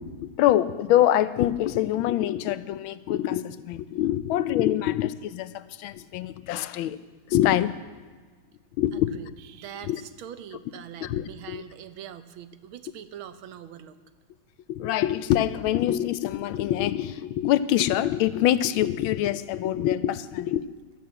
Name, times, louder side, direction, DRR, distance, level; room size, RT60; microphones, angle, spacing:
voice 1, 0.2-7.0 7.3-7.7 8.8-9.1 9.9-10.0 11.0-11.6 14.7-20.6, left 12 dB, 85° left, 14 dB, 1.4 m, -25 dB
voice 2, 8.9-14.0, right 9 dB, 90° right, 11 dB, 1.7 m, -43 dB
13.0 x 11.5 x 7.6 m, 1.4 s
omnidirectional pair, 2.2 m